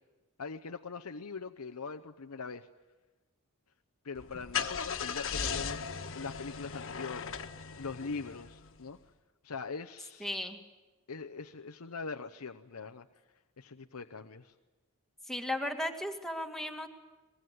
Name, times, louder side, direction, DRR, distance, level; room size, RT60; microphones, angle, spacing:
voice 1, 0.4-2.7 4.0-7.4 7.8-9.0 9.4-10.5 11.1-13.1 13.6-14.5, left 4 dB, 80° left, 6 dB, 0.8 m, -42 dB
Car / Engine starting, 4.1-8.8, left 6 dB, 65° left, 1.5 m, -37 dB
voice 2, 10.2-10.6 15.3-16.9, left 1 dB, ahead, 3 dB, 2.1 m, -35 dB
24.0 x 21.5 x 9.6 m, 1.2 s
head